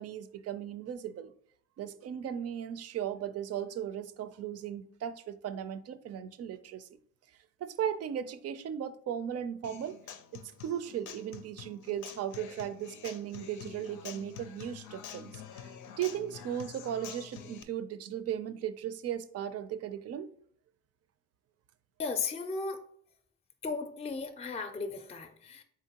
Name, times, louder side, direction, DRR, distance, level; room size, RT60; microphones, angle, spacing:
voice 1, 0.0-1.3 1.8-6.9 7.6-10.0 10.3-15.7 16.0-20.3, right 9 dB, 55° right, 0.4 m, -37 dB
Human voice / Acoustic guitar, 9.6-17.6, left 9 dB, 80° left, 0.5 m, -47 dB
voice 2, 22.0-22.8 23.6-25.6, left 4 dB, 20° left, 0.5 m, -35 dB
3.8 x 3.7 x 2.8 m
cardioid pair, 90°, 30 cm